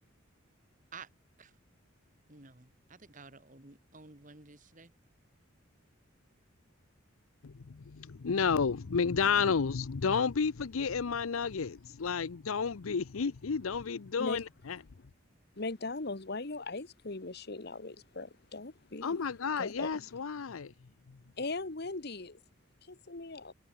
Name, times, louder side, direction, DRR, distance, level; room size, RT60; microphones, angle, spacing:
voice 1, 2.3-4.9, right 4 dB, 40° right, 2.1 m, -52 dB
voice 2, 7.4-14.8 19.0-20.7 21.1-21.2, left 5 dB, 85° left, 0.6 m, -31 dB
voice 3, 15.6-19.2 19.6-20.1 21.4-22.4 22.9-23.5, left 3 dB, 50° left, 1.3 m, -39 dB
head